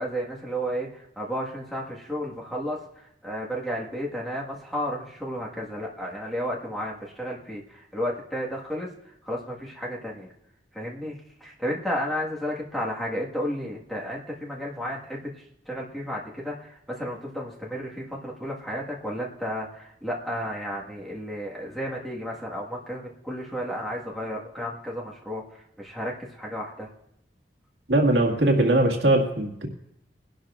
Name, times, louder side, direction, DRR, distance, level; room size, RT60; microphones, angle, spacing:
voice 1, 0.0-8.9 9.2-10.3 10.7-15.4 15.6-26.9, equal, ahead, -5 dB, 1.6 m, -32 dB
voice 2, 27.9-29.7, right 1 dB, 70° right, 1 dB, 2.0 m, -21 dB
22.5 x 12.0 x 2.4 m, 0.78 s
head